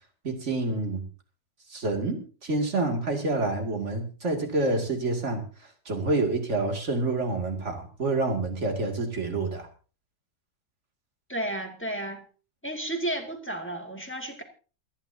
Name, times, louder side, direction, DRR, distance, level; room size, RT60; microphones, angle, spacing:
voice 1, 0.2-1.0 1.7-9.7, right 2 dB, 45° right, 3 dB, 2.8 m, -28 dB
voice 2, 11.3-12.2 12.6-14.4, right 1 dB, 5° left, 3 dB, 2.1 m, -32 dB
28.0 x 10.5 x 2.8 m, 0.37 s
omnidirectional pair, 1.8 m